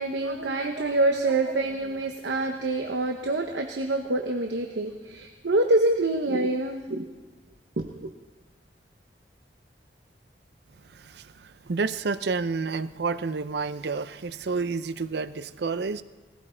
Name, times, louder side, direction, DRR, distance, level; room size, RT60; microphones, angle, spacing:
voice 1, 0.0-7.1 7.8-8.1, right 2 dB, 90° right, 4 dB, 0.9 m, -26 dB
voice 2, 11.7-16.0, right 4 dB, 65° right, 14 dB, 0.6 m, -29 dB
17.5 x 15.0 x 4.4 m, 1.2 s
head